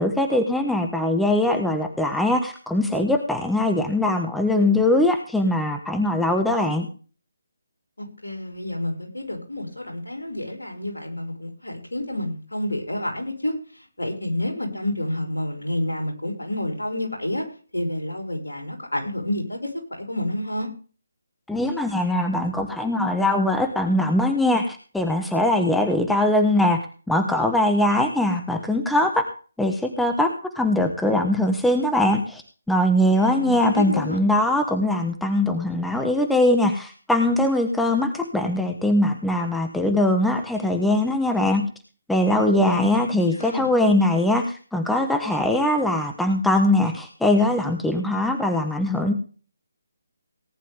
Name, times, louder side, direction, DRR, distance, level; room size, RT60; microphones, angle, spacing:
voice 1, 0.0-6.9 21.5-29.2 29.6-30.3 30.5-32.4 32.7-41.7 42.1-44.4 44.7-49.1, left 1 dB, ahead, 4 dB, 1.3 m, -21 dB
voice 2, 8.0-17.4 17.7-19.7 20.0-20.7 33.2-34.2 42.5-43.7 44.0-44.2, left 1 dB, 80° left, 1 dB, 5.9 m, -29 dB
18.5 x 10.0 x 3.6 m, 0.38 s
figure-of-eight pair, 145°, 0 cm